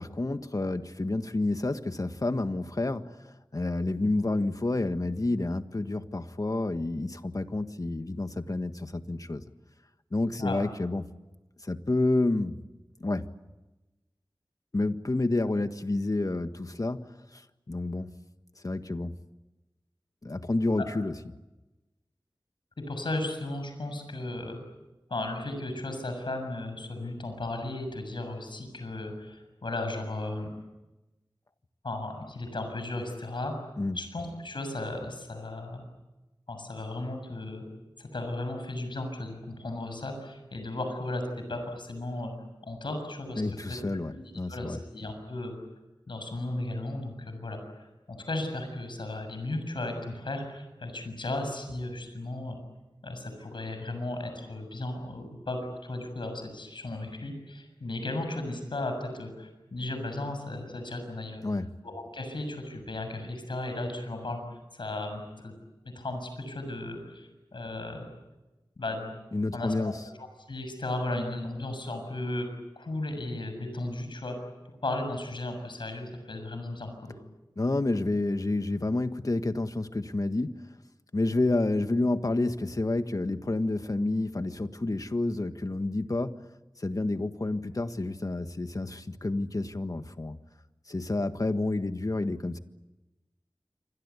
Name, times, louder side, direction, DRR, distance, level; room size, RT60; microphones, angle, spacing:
voice 1, 0.0-9.4 10.1-11.1 11.6-12.6 13.0-13.3 14.7-17.4 17.7-18.1 18.6-19.1 20.2-21.1 33.8-34.0 43.4-44.8 61.4-61.7 69.3-70.0 77.6-80.6 81.1-86.4 86.8-90.4 90.9-92.6, left 2 dB, 45° left, 9 dB, 1.6 m, -29 dB
voice 2, 22.8-24.6 25.1-30.5 31.8-33.5 33.9-35.9 36.5-37.6 38.0-42.3 42.6-44.2 44.5-45.5 46.1-52.6 53.0-61.4 61.8-64.4 64.7-65.5 65.8-68.1 68.8-69.1 69.5-69.9 70.2-72.5 72.8-74.4 74.8-77.1, left 2 dB, 85° left, 6 dB, 6.9 m, -35 dB
28.0 x 25.0 x 8.4 m, 1.1 s
wide cardioid pair, 50°, 8 cm